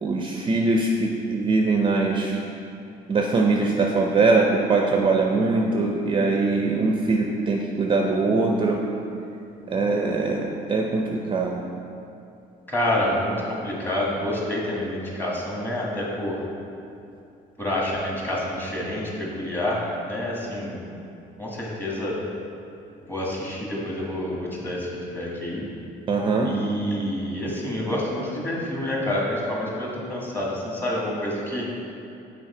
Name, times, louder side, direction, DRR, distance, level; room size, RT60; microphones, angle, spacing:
voice 1, 0.0-2.4 3.1-8.8 9.7-11.6 26.1-26.5, right 3 dB, 30° right, 1 dB, 0.5 m, -22 dB
voice 2, 12.7-16.4 17.6-20.8 21.4-22.2 23.0-25.6 26.4-31.7, left 1 dB, 10° left, -4 dB, 1.5 m, -28 dB
6.2 x 4.4 x 4.3 m, 2.7 s
cardioid pair, 110°, 17 cm